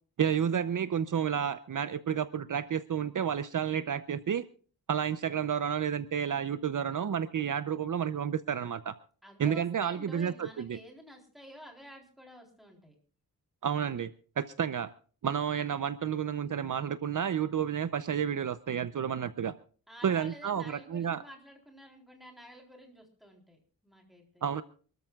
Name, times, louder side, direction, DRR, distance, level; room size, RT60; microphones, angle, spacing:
voice 1, 0.2-4.4 4.9-8.9 9.4-10.8 13.6-14.1 14.4-14.9 15.2-19.5 20.0-21.2 24.4-24.6, right 8 dB, 55° right, 13 dB, 0.6 m, -31 dB
voice 2, 9.2-13.0 19.9-24.4, equal, ahead, 1 dB, 3.8 m, -50 dB
27.0 x 13.5 x 2.3 m, 0.42 s
wide cardioid pair, 155°, 37 cm